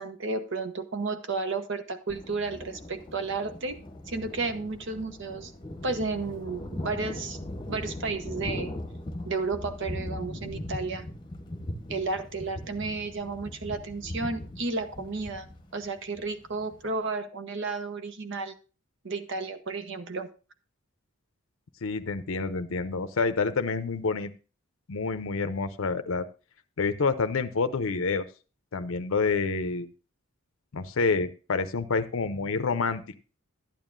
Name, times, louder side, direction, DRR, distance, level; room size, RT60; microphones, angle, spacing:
voice 1, 0.0-3.8 4.1-5.5 5.8-7.4 7.7-8.7 9.2-11.0 11.9-15.5 15.7-18.5 19.0-20.3, right 3 dB, 60° right, 9 dB, 0.9 m, -32 dB
Thunder, 2.1-16.9, left 1 dB, 20° left, 1.0 m, -39 dB
voice 2, 21.8-24.3 24.9-26.3 26.8-28.3 28.7-29.9 30.7-33.0, left 4 dB, 65° left, 9 dB, 0.6 m, -28 dB
12.0 x 9.0 x 2.5 m, 0.34 s
head